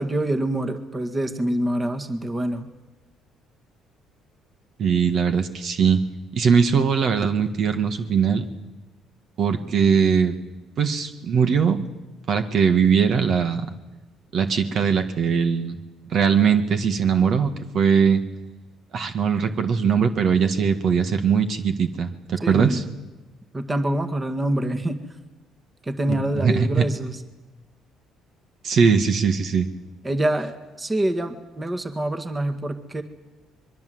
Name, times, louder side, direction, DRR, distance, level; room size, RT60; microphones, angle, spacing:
voice 1, 0.0-2.7 22.4-22.8 23.5-25.0 25.8-27.2 30.0-33.0, right 1 dB, 20° right, 8 dB, 1.9 m, -26 dB
voice 2, 4.8-6.0 6.3-8.4 9.4-10.3 10.8-11.9 12.3-13.7 14.3-15.8 16.1-18.2 18.9-22.8 26.1-26.9 28.6-29.7, right 6 dB, 55° right, 8 dB, 1.8 m, -20 dB
24.0 x 22.5 x 7.9 m, 1.1 s
cardioid pair, 110°, 0 cm